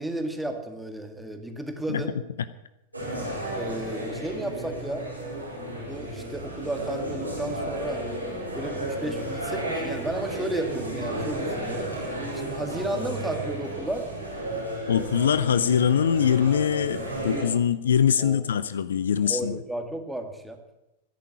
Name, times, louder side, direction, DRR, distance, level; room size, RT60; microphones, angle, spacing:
voice 1, 0.0-2.2 3.5-5.1 5.8-8.0 8.5-11.9 12.3-14.1 18.2-18.4 19.2-20.6, right 1 dB, 5° right, 5 dB, 2.0 m, -33 dB
sound 1, 2.9-17.4, right 1 dB, 85° right, 4.6 m, -33 dB
voice 2, 14.9-19.6, left 8 dB, 65° left, 14 dB, 0.6 m, -23 dB
14.0 x 10.5 x 8.4 m, 0.94 s
figure-of-eight pair, 90°, 0 cm